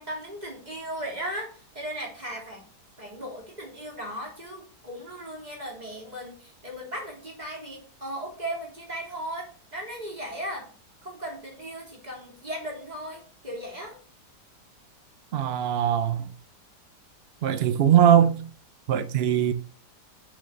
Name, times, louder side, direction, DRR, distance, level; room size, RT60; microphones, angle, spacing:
voice 1, 0.0-2.6 3.0-10.7 11.0-14.0, right 1 dB, 25° right, 3.5 m, -37 dB
voice 2, 15.3-16.3 17.4-18.4 18.9-19.5, right 9 dB, 70° right, 0.6 m, -21 dB
6.8 x 6.6 x 6.5 m
omnidirectional pair, 1.8 m